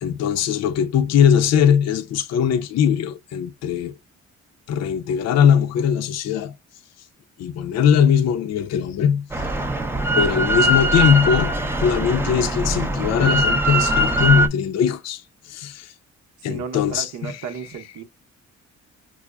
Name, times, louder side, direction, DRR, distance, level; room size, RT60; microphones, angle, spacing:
voice 1, 0.0-3.9 4.7-6.5 7.4-9.5 10.2-11.5 11.8-15.9 16.4-17.3, left 8 dB, 60° left, 0.5 m, -20 dB
Drill, 9.3-14.5, right 1 dB, 10° right, 0.5 m, -21 dB
voice 2, 16.5-18.0, right 7 dB, 70° right, 0.8 m, -33 dB
5.9 x 2.0 x 2.2 m
cardioid pair, 90°, 30 cm